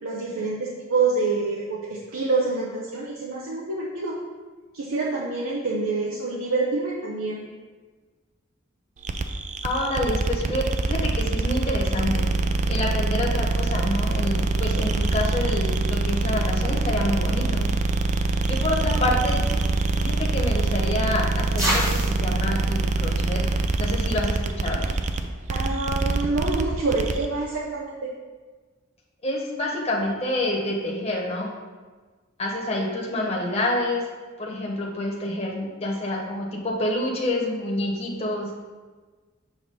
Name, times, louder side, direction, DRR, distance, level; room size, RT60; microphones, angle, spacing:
voice 1, 0.0-4.2 4.7-7.4 25.5-28.1, right 3 dB, 90° right, -3 dB, 0.7 m, -27 dB
sound 1, 9.0-27.2, right 3 dB, 35° right, 0.3 m, -24 dB
voice 2, 9.6-12.3 12.7-17.7 18.5-19.4 20.0-23.4 23.8-24.9 29.2-31.5 32.4-34.0 34.4-38.5, left 1 dB, 30° left, -3 dB, 0.9 m, -27 dB
sound 2, 19.2-24.3, equal, 15° right, 1.3 m, -33 dB
6.8 x 2.9 x 5.3 m, 1.4 s
head